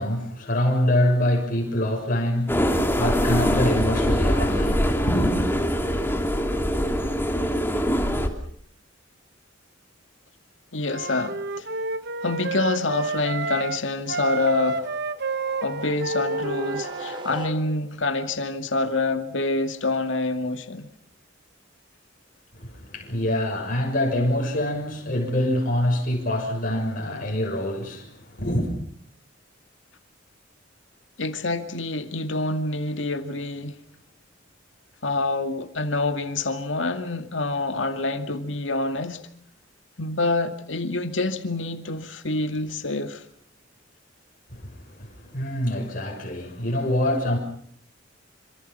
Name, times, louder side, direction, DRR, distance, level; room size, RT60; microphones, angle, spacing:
voice 1, 0.0-5.4 22.5-28.7 44.5-47.4, left 1 dB, 45° left, 6.7 m, -25 dB
sound 1, 2.5-8.3, equal, 10° left, 3.1 m, -23 dB
voice 2, 10.7-11.7 12.2-14.9 15.6-20.9 31.2-33.8 35.0-39.2 40.0-43.2, left 2 dB, 70° left, 2.2 m, -27 dB
Wind instrument woodwind instrument, 10.8-13.8 14.1-17.2, right 3 dB, 60° right, 1.1 m, -29 dB
sound 2, 15.0-18.1, right 1 dB, 25° right, 3.1 m, -40 dB
28.0 x 27.0 x 5.6 m
head